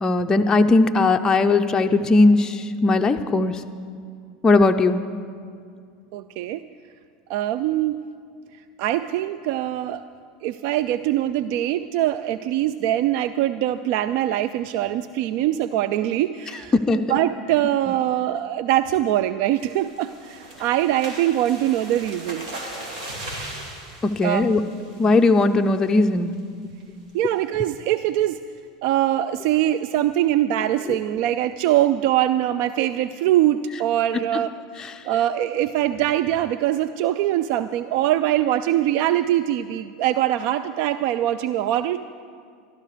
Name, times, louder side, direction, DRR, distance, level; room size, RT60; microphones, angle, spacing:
voice 1, 0.0-3.6 4.4-5.0 16.7-17.0 24.0-24.6 25.0-26.3 30.9-31.0, left 3 dB, 15° left, 5 dB, 0.5 m, -18 dB
voice 2, 6.1-6.6 7.3-8.0 8.8-10.0 10.4-16.7 17.1-22.5 24.2-24.5 27.1-28.4 28.8-34.5 35.0-42.0, right 12 dB, 60° right, 13 dB, 0.3 m, -23 dB
sound 1, 19.6-25.3 25.7-26.0 26.3-26.4 26.8-27.1, right 1 dB, 80° right, 2.3 m, -38 dB
13.0 x 12.5 x 5.0 m, 2.2 s
supercardioid pair, 110°, 4 cm